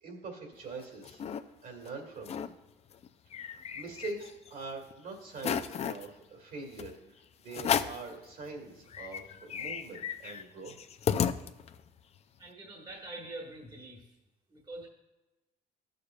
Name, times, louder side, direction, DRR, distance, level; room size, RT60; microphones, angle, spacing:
voice 1, 0.0-1.2 1.6-2.5 3.4-10.8, right 3 dB, 60° right, 2 dB, 2.3 m, -43 dB
sound 1, 0.6-1.4 1.8-1.9 2.2-2.5 2.9-4.5 4.9-5.0 5.4-6.1 6.8-6.9 7.5-8.1 8.6-8.7 8.9-11.9, left 8 dB, 40° left, 0.4 m, -34 dB
voice 2, 12.4-14.2 14.5-14.9, right 2 dB, 25° right, 0 dB, 1.4 m, -45 dB
14.0 x 6.7 x 2.4 m, 1.0 s
cardioid pair, 110°, 17 cm